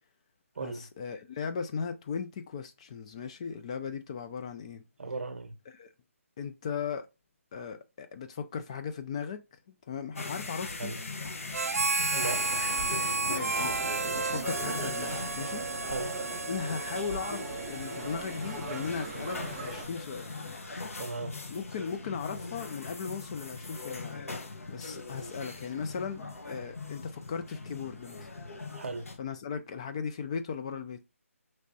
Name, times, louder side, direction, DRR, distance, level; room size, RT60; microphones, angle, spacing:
voice 1, 0.6-4.8 5.7-5.9 6.4-7.1 7.5-10.9 12.9-13.9 14.1-15.9 16.4-20.3 21.5-24.2 24.7-28.3 29.2-31.0, left 6 dB, 25° left, 0.3 m, -37 dB
voice 2, 5.0-5.5 10.8-11.0 12.1-12.5 15.9-16.2 21.0-21.4 28.8-29.1, right 3 dB, 55° right, 0.8 m, -36 dB
sound 1, 10.2-29.2, left 3 dB, 70° left, 1.0 m, -41 dB
Harmonica, 11.5-19.3, right 3 dB, 90° right, 0.3 m, -33 dB
sound 2, 12.1-19.9, right 3 dB, 15° right, 0.6 m, -40 dB
5.1 x 3.2 x 2.6 m
figure-of-eight pair, 155°, 8 cm